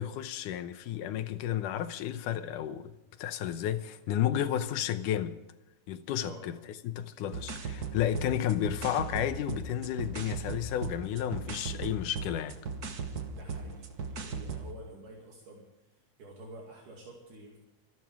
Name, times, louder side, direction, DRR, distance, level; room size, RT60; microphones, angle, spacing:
voice 1, 0.0-2.9 3.2-5.4 5.9-6.6 6.8-12.6, left 11 dB, 75° left, 2.3 m, -32 dB
sound 1, 7.3-14.7, right 4 dB, 85° right, 0.8 m, -38 dB
voice 2, 13.3-15.7 16.2-17.6, right 2 dB, 65° right, 4.1 m, -49 dB
25.5 x 12.5 x 3.6 m
omnidirectional pair, 4.0 m